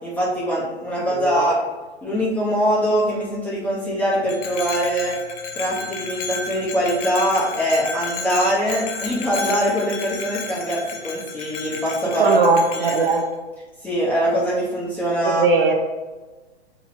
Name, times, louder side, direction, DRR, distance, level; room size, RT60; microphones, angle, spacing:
voice 1, 0.0-1.6 2.0-5.1 5.5-12.4 12.7-12.9 13.8-15.4, equal, 5° left, -7 dB, 0.9 m, -22 dB
voice 2, 1.0-1.5 12.0-13.2 15.2-15.7, right 4 dB, 55° right, 2 dB, 0.6 m, -20 dB
Bell, 4.3-13.2, left 4 dB, 35° left, 0.5 m, -32 dB
2.9 x 2.9 x 4.2 m, 1.2 s
hypercardioid pair, 125°, 33 cm